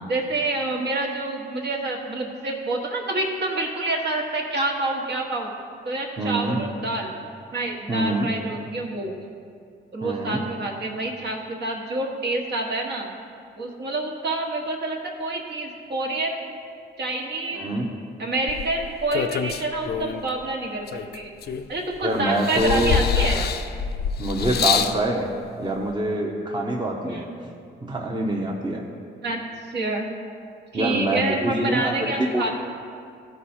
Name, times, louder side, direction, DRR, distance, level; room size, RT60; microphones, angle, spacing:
voice 1, 0.1-5.5 5.8-7.2 7.5-9.1 9.9-13.1 13.6-16.5 17.0-17.9 18.2-21.3 21.7-23.4 27.1-27.2 29.2-29.4 29.7-30.1 30.7-32.5, right 2 dB, 60° right, 0 dB, 1.4 m, -27 dB
voice 2, 6.2-6.6 7.9-8.3 10.0-10.4 17.5-17.9 22.0-23.0 24.2-25.3 25.6-27.5 27.8-28.8 30.7-32.5, right 1 dB, 20° right, 0 dB, 0.9 m, -25 dB
sound 1, 18.5-20.3 20.9-21.9 22.4-25.0 25.9-26.0, left 7 dB, 55° left, 0.5 m, -26 dB
13.5 x 4.7 x 4.4 m, 2.3 s
cardioid pair, 90°, 20 cm